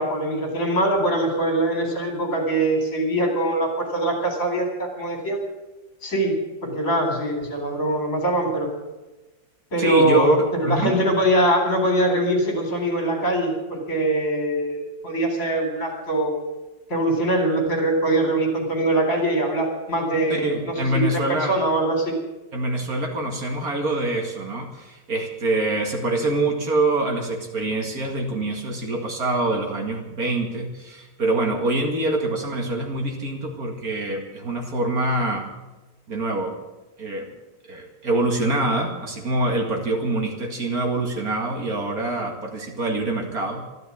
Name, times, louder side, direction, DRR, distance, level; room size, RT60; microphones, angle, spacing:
voice 1, 0.0-5.4 6.0-6.4 6.6-8.7 9.7-16.3 16.9-22.1, right 1 dB, 50° left, 2 dB, 4.3 m, -22 dB
voice 2, 9.8-10.4 10.6-10.9 20.3-21.6 22.5-35.5 36.1-36.6 37.0-37.3 37.7-43.6, right 2 dB, 55° right, 2 dB, 2.5 m, -25 dB
13.5 x 12.5 x 8.4 m, 1.1 s
omnidirectional pair, 1.9 m